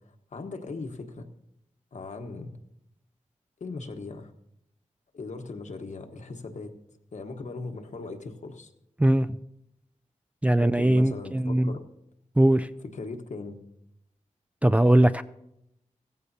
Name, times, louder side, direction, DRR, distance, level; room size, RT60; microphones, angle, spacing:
voice 1, 0.3-1.3 1.9-2.5 3.6-4.3 5.1-6.7 7.1-8.7 10.6-11.8 12.8-13.6, left 3 dB, 65° left, 5 dB, 1.3 m, -38 dB
voice 2, 9.0-9.4 10.4-11.7 12.4-12.7 14.6-15.2, right 1 dB, 10° right, 10 dB, 0.3 m, -20 dB
16.5 x 15.0 x 2.8 m, 0.80 s
wide cardioid pair, 120°, 13 cm